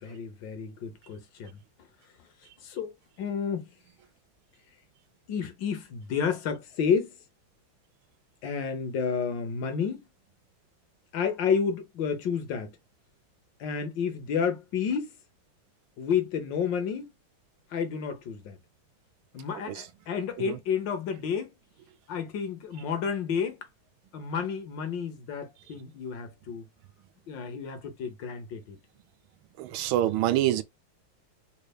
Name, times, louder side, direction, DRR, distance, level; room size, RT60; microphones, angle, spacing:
voice 1, 0.0-1.6 2.6-2.9 3.2-3.7 5.3-7.2 8.4-10.0 11.1-12.8 13.6-15.2 16.0-17.1 17.7-18.6 19.3-21.5 22.1-23.6 24.1-26.7 27.3-28.8, left 6 dB, 65° left, 1.6 m, -30 dB
voice 2, 29.6-30.6, right 13 dB, 85° right, 1.4 m, -26 dB
4.0 x 3.3 x 2.3 m
omnidirectional pair, 2.2 m